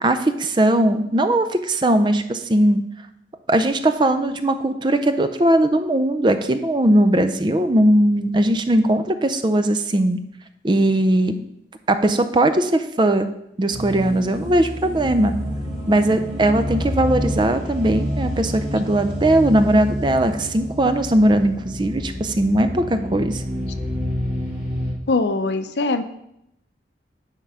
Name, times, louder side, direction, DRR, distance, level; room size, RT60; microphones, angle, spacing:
voice 1, 0.0-2.8 3.5-10.2 10.6-11.4 11.9-13.3 13.6-15.3 15.9-23.4, right 1 dB, 25° right, 9 dB, 0.5 m, -19 dB
sound 1, 13.7-24.9, equal, 5° right, 2.2 m, -28 dB
voice 2, 25.1-26.0, left 3 dB, 80° left, 10 dB, 0.6 m, -21 dB
10.0 x 3.7 x 5.6 m, 0.79 s
head